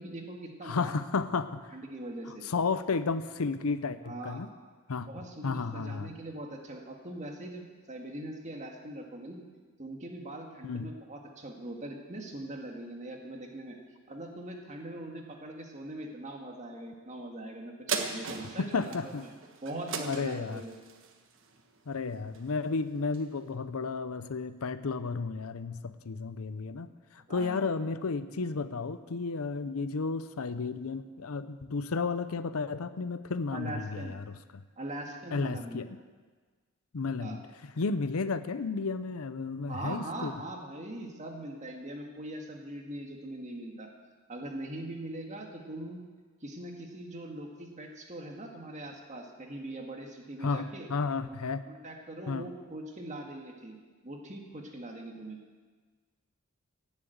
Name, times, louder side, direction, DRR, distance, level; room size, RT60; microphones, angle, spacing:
voice 1, 0.0-0.9 1.7-2.4 4.1-4.4 5.0-9.4 9.8-13.8 14.1-19.3 19.6-20.8 27.3-27.6 33.5-34.2 34.8-35.8 37.2-37.4 39.7-43.9 44.3-46.0 46.4-50.9 51.3-51.4 51.7-53.8 54.0-55.4, right 1 dB, 30° right, 1 dB, 1.9 m, -41 dB
voice 2, 0.6-1.7 2.4-4.5 4.9-5.1 5.4-6.1 10.6-10.9 18.6-19.2 20.1-20.6 21.9-34.6 35.3-36.0 36.9-40.3 50.4-51.6 52.3-52.5, left 4 dB, 75° left, 13 dB, 0.6 m, -33 dB
sound 1, 17.9-22.6 23.1-23.2, right 5 dB, 60° right, 1.3 m, -38 dB
17.5 x 7.5 x 8.0 m, 1.4 s
head